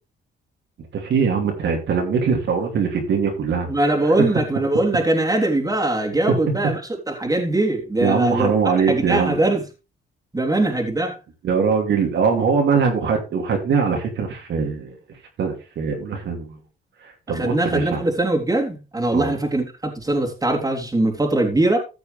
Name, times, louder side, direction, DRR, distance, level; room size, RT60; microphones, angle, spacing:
voice 1, 0.9-4.1 6.3-6.4 8.0-9.4 11.4-14.9 15.4-16.6 17.0-18.0 19.1-19.4, right 5 dB, 65° right, 2.9 m, -22 dB
voice 2, 3.7-6.8 7.1-8.5 8.9-9.6 10.3-11.2 17.3-21.8, right 2 dB, 15° right, 3.4 m, -21 dB
14.5 x 6.9 x 3.4 m
cardioid pair, 90°, 20 cm